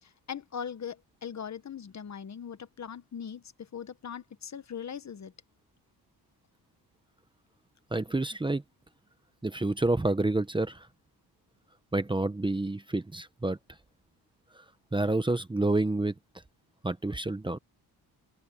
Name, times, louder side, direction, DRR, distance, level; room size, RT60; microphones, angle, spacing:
voice 1, 0.0-5.3, left 7 dB, 45° left, 1.3 m, -40 dB
voice 2, 7.9-8.6 9.4-10.9 11.9-13.6 14.9-16.1 16.8-17.6, right 2 dB, 10° right, 1.0 m, -28 dB
open air
cardioid pair, 110°, 40 cm